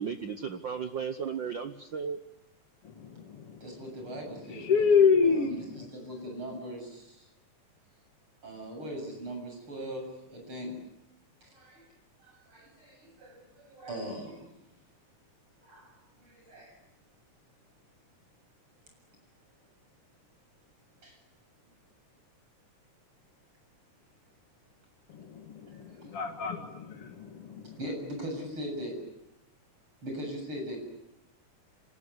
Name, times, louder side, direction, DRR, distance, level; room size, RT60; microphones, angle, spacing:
voice 1, 0.0-2.2, right 6 dB, 65° right, 8 dB, 1.1 m, -35 dB
voice 2, 2.8-3.8 4.5-5.8 25.1-27.8, left 5 dB, 50° left, 3 dB, 2.4 m, -27 dB
voice 3, 3.6-5.0 5.2-7.3 8.4-10.8 11.4-11.9 12.2-14.5 15.6-15.9 16.2-16.8 21.0-21.2 25.7-26.1 27.8-29.1 30.0-30.8, equal, 45° right, 2 dB, 8.3 m, -40 dB
26.5 x 19.0 x 9.6 m, 0.90 s
omnidirectional pair, 3.5 m